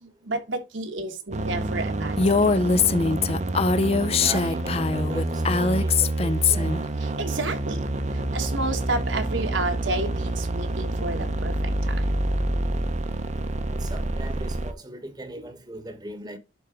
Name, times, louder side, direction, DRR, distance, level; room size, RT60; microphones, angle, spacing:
voice 1, 0.0-2.3 7.2-7.8 8.3-12.1, right 2 dB, 75° right, 1.6 m, -31 dB
sound 1, 1.3-14.7, right 1 dB, 35° right, 0.7 m, -28 dB
Female speech woman speaking, 2.2-6.8, left 4 dB, 30° left, 0.5 m, -22 dB
voice 2, 4.2-6.8 13.7-16.4, right 1 dB, 20° right, 1.1 m, -39 dB
11.0 x 4.0 x 3.8 m
head